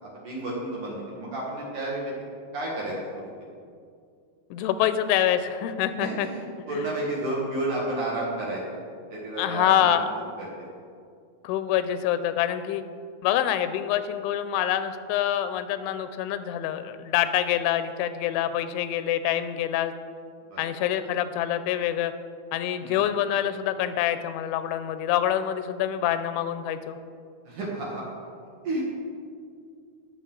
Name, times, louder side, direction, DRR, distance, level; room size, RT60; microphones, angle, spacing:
voice 1, 0.0-2.1 2.5-3.3 6.0-8.8 9.1-10.0 10.4-10.7 20.5-20.6 22.8-23.0 27.4-28.0 28.6-28.8, right 1 dB, 55° right, -5 dB, 2.5 m, -31 dB
voice 2, 4.5-6.3 6.7-6.9 9.4-10.1 11.4-12.8 13.2-19.9 20.6-22.1 22.5-27.0, left 11 dB, 85° left, 11 dB, 2.9 m, -26 dB
19.0 x 6.9 x 3.8 m, 2.3 s
omnidirectional pair, 5.4 m